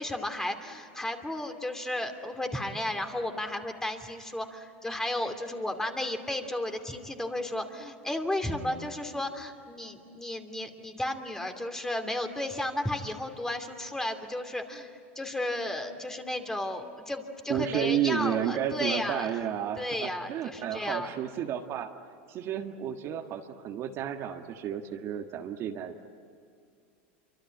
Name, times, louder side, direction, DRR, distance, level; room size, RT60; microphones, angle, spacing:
voice 1, 0.0-19.4 19.8-21.1, left 1 dB, 10° left, 6 dB, 2.7 m, -33 dB
voice 2, 17.5-21.9 22.3-26.1, right 9 dB, 45° right, 4 dB, 1.7 m, -32 dB
26.5 x 25.0 x 9.0 m, 2.4 s
supercardioid pair, 110°, 6 cm